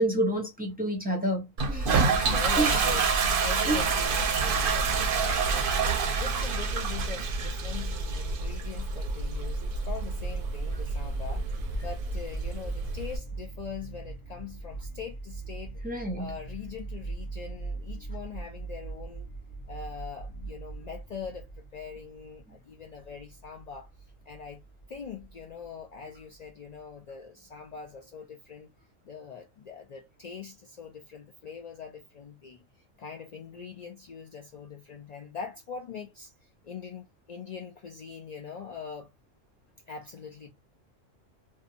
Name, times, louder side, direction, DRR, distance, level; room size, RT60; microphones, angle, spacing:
voice 1, 0.0-2.8 3.4-3.8 15.8-16.3 22.5-22.6, right 1 dB, 10° right, 0.7 m, -30 dB
Toilet flush, 1.6-13.2, right 4 dB, 55° right, 0.6 m, -28 dB
voice 2, 1.9-15.8 16.1-19.3 19.7-23.9 24.3-24.6 24.9-28.7 29.0-32.6 33.0-39.1 39.9-40.5, left 6 dB, 80° left, 0.3 m, -42 dB
sound 1, 9.9-27.0, right 3 dB, 45° left, 0.7 m, -41 dB
2.7 x 2.2 x 2.4 m
omnidirectional pair, 1.3 m